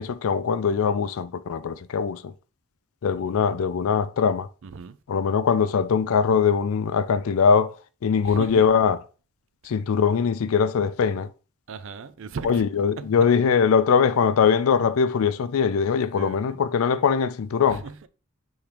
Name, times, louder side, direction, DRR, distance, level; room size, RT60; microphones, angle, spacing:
voice 1, 0.0-2.3 3.0-4.5 5.1-7.8 8.0-9.0 9.6-11.3 12.4-17.8, left 6 dB, 70° left, 0.4 m, -21 dB
voice 2, 4.6-5.0 8.2-8.6 9.6-9.7 11.7-12.6 13.0-13.1 16.1-16.6 17.7-18.1, right 5 dB, 60° right, 0.4 m, -37 dB
3.6 x 3.4 x 4.4 m
head